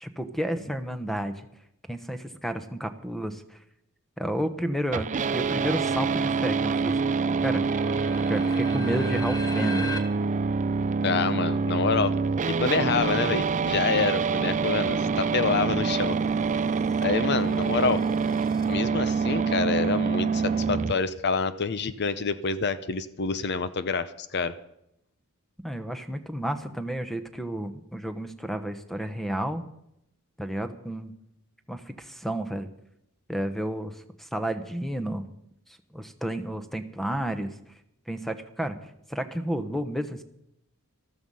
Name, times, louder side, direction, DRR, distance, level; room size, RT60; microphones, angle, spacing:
voice 1, 0.0-1.5 1.9-3.6 4.2-7.0 7.4-7.6 8.3-9.8 25.6-29.6 30.4-31.1 31.7-32.7 33.3-35.3 35.9-37.5 38.1-38.8 39.1-40.2, right 1 dB, ahead, 10 dB, 1.0 m, -31 dB
sound 1, 4.9-20.9, right 5 dB, 35° right, 0.4 m, -26 dB
sound 2, 6.5-10.0 14.2-15.2 16.0-18.7, left 3 dB, 20° left, 1.4 m, -41 dB
voice 2, 11.0-12.2 12.5-16.2 17.0-18.0 18.7-24.6, left 4 dB, 50° left, 14 dB, 0.6 m, -27 dB
14.0 x 13.5 x 5.5 m, 0.79 s
head